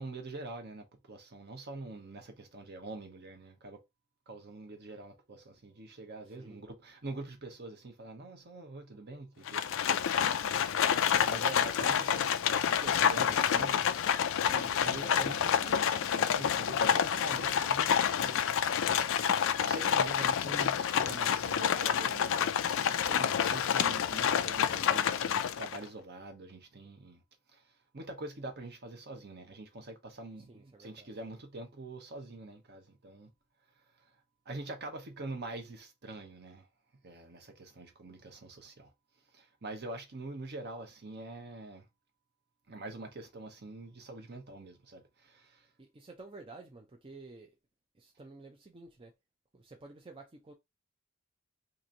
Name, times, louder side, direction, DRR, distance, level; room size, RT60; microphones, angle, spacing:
voice 1, 0.0-3.8 4.3-10.2 10.5-13.8 14.2-18.6 19.6-22.8 23.1-27.2 27.5-33.3 33.8-34.1 34.5-36.7 37.0-38.9 39.3-41.9 42.7-45.7, right 2 dB, 50° right, 0.9 m, -45 dB
Livestock farm animals working animals, 9.5-25.8, left 8 dB, 60° left, 0.4 m, -28 dB
voice 2, 30.5-31.1 45.8-47.5 48.0-49.1 49.5-50.5, right 3 dB, 25° right, 0.5 m, -51 dB
3.0 x 2.5 x 3.8 m
head